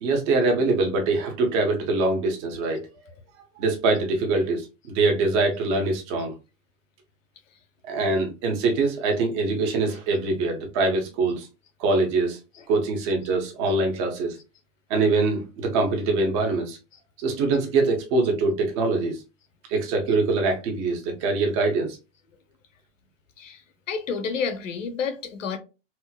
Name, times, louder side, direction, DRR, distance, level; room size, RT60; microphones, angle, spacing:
voice 1, 0.0-2.8 3.6-6.3 7.9-11.5 11.8-12.4 12.7-14.4 14.9-16.8 17.2-19.2 19.7-22.0, right 3 dB, 25° right, 0.7 m, -23 dB
voice 2, 23.4-25.6, left 5 dB, 85° left, 0.9 m, -30 dB
4.3 x 2.0 x 2.3 m
hypercardioid pair, 160°, 37 cm